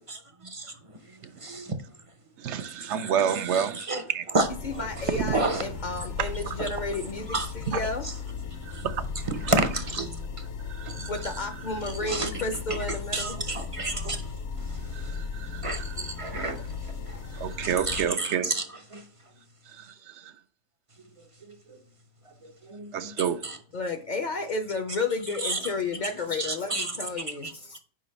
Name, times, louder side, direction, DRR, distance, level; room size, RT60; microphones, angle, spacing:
voice 1, 0.1-0.7 1.4-1.7 3.5-4.0 4.3-4.5 5.3-5.7 7.3-7.5 9.5-10.1 10.9-11.0 12.0-12.3 13.1-14.2 15.6-16.6 17.1-17.2 17.6-18.6 18.9-19.0 21.5-21.6 22.6-23.1 23.4-23.6 25.4-25.6 26.4-26.9, right 2 dB, 40° right, 0.5 m, -29 dB
voice 2, 2.4-4.3 5.2-5.4 6.2-6.5 7.7-7.9 8.6-9.5 10.7-11.1 14.9-16.0 17.3-18.5 19.7-20.3 22.9-23.4, right 8 dB, 80° right, 0.9 m, -30 dB
sound 1, 4.3-18.1, left 5 dB, 65° left, 1.0 m, -36 dB
voice 3, 4.6-8.2 11.1-13.4 23.7-27.8, left 3 dB, 50° left, 0.6 m, -32 dB
5.0 x 3.9 x 5.2 m
omnidirectional pair, 1.2 m